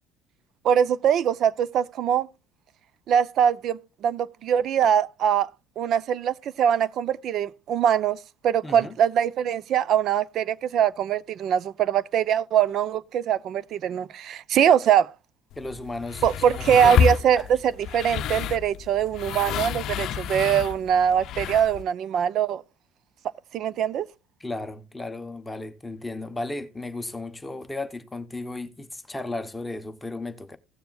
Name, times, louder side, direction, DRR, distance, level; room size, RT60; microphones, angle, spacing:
voice 1, 0.6-2.3 3.1-5.5 5.8-8.2 8.4-15.1 16.2-17.4 17.9-22.6 23.5-24.1, right 9 dB, 55° right, 0.5 m, -22 dB
voice 2, 8.6-8.9 15.6-17.5 24.4-30.6, left 2 dB, 10° left, 0.8 m, -35 dB
sound 1, 15.5-21.8, left 8 dB, 60° left, 0.6 m, -29 dB
17.0 x 6.9 x 2.3 m
cardioid pair, 115°, 0 cm